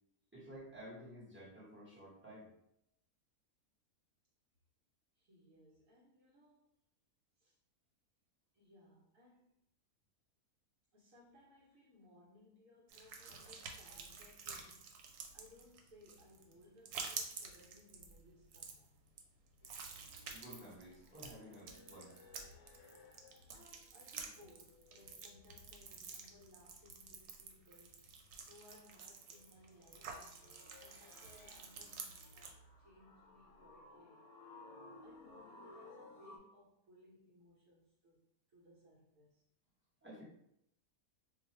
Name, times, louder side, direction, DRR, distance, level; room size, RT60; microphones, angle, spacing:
voice 1, 0.3-2.5 20.3-22.1 40.0-40.2, equal, 10° right, -7 dB, 0.8 m, -53 dB
voice 2, 5.1-6.7 7.4-7.6 8.5-9.6 10.9-19.0 23.5-28.1 28.5-34.3 35.0-39.4, left 1 dB, 65° right, -4 dB, 1.0 m, -64 dB
sound 1, 12.9-32.5, right 5 dB, 90° right, 1.1 m, -50 dB
sound 2, 19.6-24.0 24.3-25.5 28.8-36.4, left 2 dB, 70° left, 1.0 m, -60 dB
2.5 x 2.4 x 4.0 m, 0.76 s
omnidirectional pair, 1.6 m